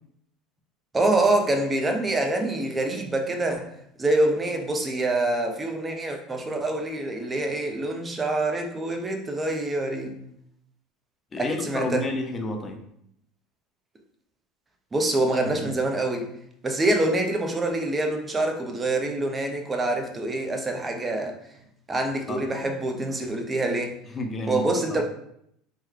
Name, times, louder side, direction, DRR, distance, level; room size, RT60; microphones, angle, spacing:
voice 1, 0.9-3.7 4.0-10.2 11.4-12.1 14.9-16.3 16.6-21.3 21.9-24.0 24.5-25.0, right 2 dB, 20° right, 0.6 m, -25 dB
voice 2, 11.3-12.8 15.4-15.6 22.3-22.5 24.1-25.0, left 2 dB, 25° left, 0.6 m, -31 dB
3.0 x 2.2 x 3.7 m
supercardioid pair, 100°, 0 cm